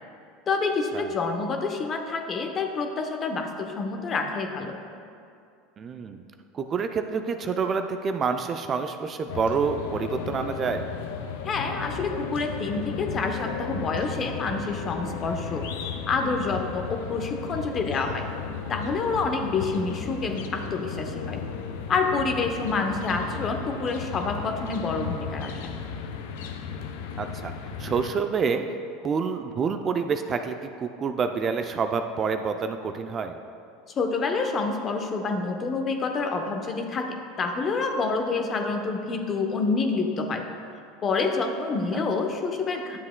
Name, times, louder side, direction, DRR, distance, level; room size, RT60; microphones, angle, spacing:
voice 1, 0.5-4.8 11.4-15.7 16.1-18.2 18.7-21.4 21.9-25.8 33.9-40.5 41.0-43.0, left 4 dB, 35° left, 4 dB, 0.8 m, -28 dB
voice 2, 5.8-6.2 6.5-10.9 22.5-22.6 27.2-27.5 27.8-28.6 29.0-33.4 41.9-42.0, right 5 dB, 35° right, 7 dB, 0.4 m, -28 dB
sound 1, 9.3-28.1, left 6 dB, 75° left, 0.5 m, -35 dB
10.5 x 7.2 x 2.2 m, 2.4 s
hypercardioid pair, 95°, 0 cm